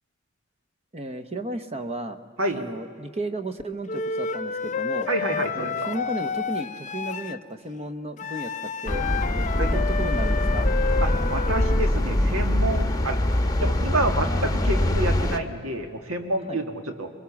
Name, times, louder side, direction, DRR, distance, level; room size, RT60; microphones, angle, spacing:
voice 1, 0.9-2.2 2.5-5.1 5.5-8.5 8.8-9.1 9.3-10.7 16.5-16.6, right 1 dB, 30° right, 9 dB, 1.0 m, -34 dB
Wind instrument woodwind instrument, 3.9-7.4 8.2-11.9, left 5 dB, 35° left, 0.5 m, -30 dB
voice 2, 5.1-5.9 9.6-9.7 11.0-13.2 13.6-17.1, right 1 dB, 70° right, 6 dB, 2.0 m, -28 dB
sound 1, 8.9-15.4, left 1 dB, 15° left, 1.0 m, -23 dB
23.5 x 20.5 x 7.1 m, 2.3 s
head